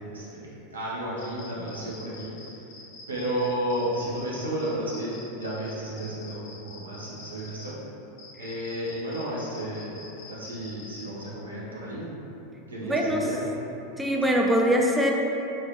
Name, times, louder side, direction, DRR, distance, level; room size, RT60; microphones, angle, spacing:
voice 1, 0.1-2.3 3.1-5.1 5.4-7.7 8.4-10.0 10.3-12.1 12.7-13.4, right 1 dB, 80° right, -6 dB, 0.7 m, -32 dB
sound 1, 1.2-7.7 8.2-11.3, left 3 dB, 50° left, 0.5 m, -46 dB
voice 2, 12.9-13.3 14.0-15.1, equal, 10° right, 0 dB, 0.4 m, -22 dB
3.0 x 2.4 x 2.9 m, 2.9 s
figure-of-eight pair, 85°, 0 cm